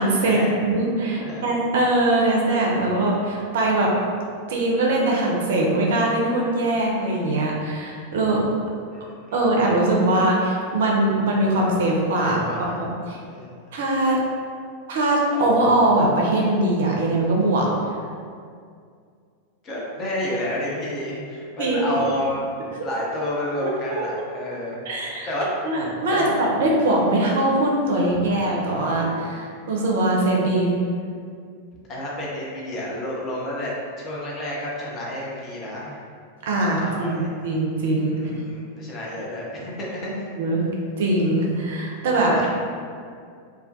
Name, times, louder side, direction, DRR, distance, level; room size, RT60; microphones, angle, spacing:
voice 1, 0.0-3.9 4.5-8.4 9.3-12.5 12.8-13.2 13.7-14.2 14.9-17.7 21.6-21.9 23.6-24.1 24.9-25.3 25.6-30.8 36.5-38.2 40.4-40.7 41.0-42.3, right 1 dB, 55° right, -2 dB, 0.4 m, -21 dB
voice 2, 8.9-9.4 12.2-12.9 13.3-13.6 19.6-22.4 22.8-25.5 26.1-26.3 28.1-28.3 31.9-36.0 36.8-37.3 38.1-40.3 42.3-42.5, left 1 dB, 30° left, -4 dB, 0.5 m, -30 dB
2.2 x 2.1 x 2.5 m, 2.2 s
figure-of-eight pair, 90°, 0 cm